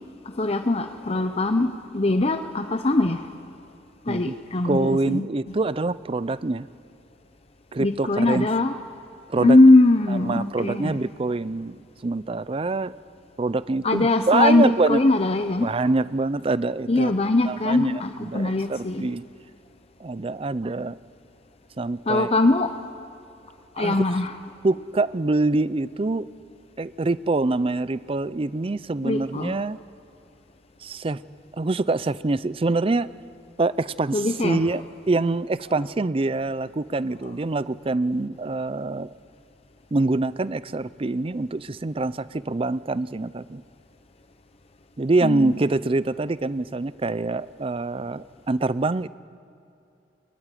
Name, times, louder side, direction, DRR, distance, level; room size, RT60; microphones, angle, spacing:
voice 1, 0.3-3.3 4.1-5.5 7.8-8.8 9.4-11.0 13.8-15.7 16.9-19.1 22.1-22.7 23.8-24.3 29.0-29.6 34.1-34.6 45.2-45.5, left 2 dB, 35° left, 8 dB, 0.8 m, -21 dB
voice 2, 4.6-6.7 7.7-8.5 9.3-9.6 10.1-12.9 13.4-15.0 15.6-17.1 17.5-19.2 20.0-21.0 21.8-22.3 23.8-24.0 24.6-26.3 26.8-29.8 30.8-31.2 31.6-33.1 33.6-39.1 39.9-43.6 45.0-49.1, right 3 dB, 30° right, 17 dB, 0.5 m, -25 dB
22.0 x 21.5 x 9.9 m, 2.7 s
head